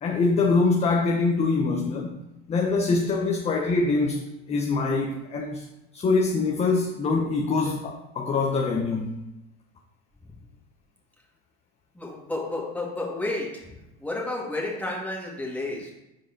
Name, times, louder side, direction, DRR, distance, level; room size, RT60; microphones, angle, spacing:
voice 1, 0.0-2.2 2.5-4.2 4.5-5.6 5.9-9.1, left 3 dB, 20° left, 2 dB, 0.7 m, -24 dB
voice 2, 12.0-13.7 14.0-15.9, left 2 dB, 5° left, -3 dB, 2.0 m, -31 dB
4.8 x 4.4 x 5.8 m, 0.92 s
hypercardioid pair, 100°, 30 cm